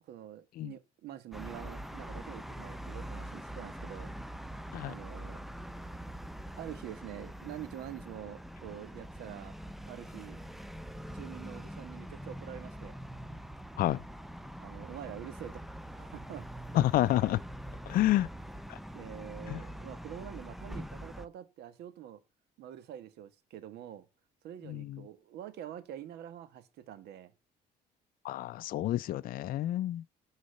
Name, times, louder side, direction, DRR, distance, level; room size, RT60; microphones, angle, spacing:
voice 1, 0.1-4.1 4.8-5.4 6.6-9.5 9.8-10.4 11.1-12.9 13.4-13.5 14.6-15.7 15.9-16.5 18.9-22.2 22.6-24.1 24.4-27.3, right 11 dB, 75° right, 1.4 m, -46 dB
sound 1, 1.3-21.3, equal, ahead, 0.6 m, -44 dB
voice 2, 16.7-17.4 17.9-18.3 19.5-19.6 24.7-25.0 28.2-30.0, left 14 dB, 60° left, 0.4 m, -29 dB
11.5 x 4.1 x 6.6 m
cardioid pair, 110°, 17 cm